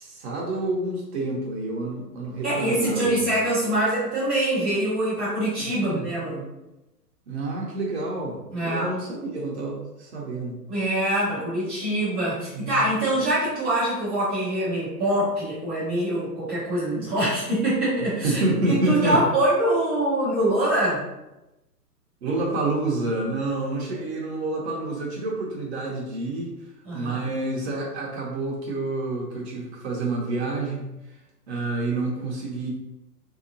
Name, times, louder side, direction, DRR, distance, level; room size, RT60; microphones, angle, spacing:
voice 1, 0.0-3.3 5.7-6.1 7.3-10.6 11.4-11.5 12.5-12.8 18.2-19.2 22.2-26.5 26.9-30.9 31.5-32.7, right 2 dB, 45° right, -2 dB, 0.8 m, -28 dB
voice 2, 2.4-6.4 8.5-8.9 10.7-18.4 18.7-21.0 26.8-27.3, right 1 dB, 10° right, -11 dB, 0.4 m, -24 dB
3.5 x 2.8 x 2.6 m, 0.96 s
hypercardioid pair, 140°, 48 cm